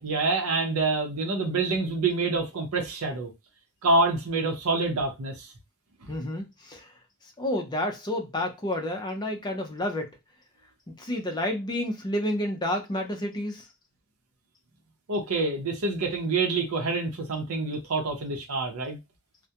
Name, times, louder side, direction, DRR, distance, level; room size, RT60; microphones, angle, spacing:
voice 1, 0.0-3.3 3.8-5.5 15.1-19.0, right 3 dB, 80° right, 0.6 m, -27 dB
voice 2, 6.1-6.9 7.4-10.2 11.0-13.7, left 1 dB, 20° left, 0.5 m, -30 dB
2.3 x 2.1 x 2.7 m
head